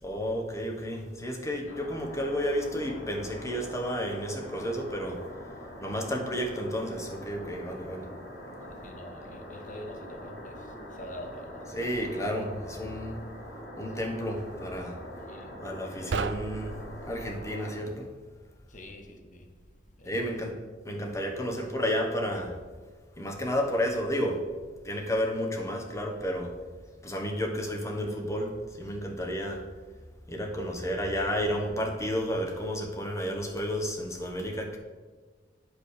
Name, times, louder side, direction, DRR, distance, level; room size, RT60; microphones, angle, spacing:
voice 1, 0.0-8.1 11.7-13.2 13.8-15.0 15.6-16.8 17.1-18.1 20.1-20.6 20.8-22.5 23.2-24.4 24.8-26.5 27.0-29.6 30.3-34.8, equal, 15° left, 1.3 m, -31 dB
sound 1, 1.7-17.8, equal, 65° left, 2.3 m, -44 dB
voice 2, 8.7-11.9 15.2-15.7 18.7-19.5 20.0-20.3, equal, 45° left, 1.3 m, -46 dB
sound 2, 16.1-17.6, right 5 dB, 85° right, 0.4 m, -35 dB
9.9 x 5.0 x 6.7 m
head